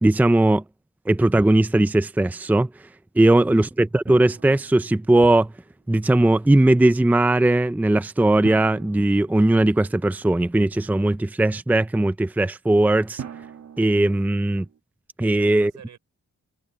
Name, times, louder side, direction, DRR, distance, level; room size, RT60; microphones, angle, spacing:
voice 1, 0.0-0.6 1.1-2.7 3.2-5.5 5.9-13.2 13.8-14.7 15.2-15.7, right 1 dB, 5° right, 0.6 m, -19 dB
voice 2, 3.2-3.7 15.2-16.0, right 8 dB, 80° right, 6.3 m, -48 dB
Drum, 4.1-5.6 8.4-10.2 13.2-14.8, right 8 dB, 65° right, 2.1 m, -42 dB
wide cardioid pair, 115°, 29 cm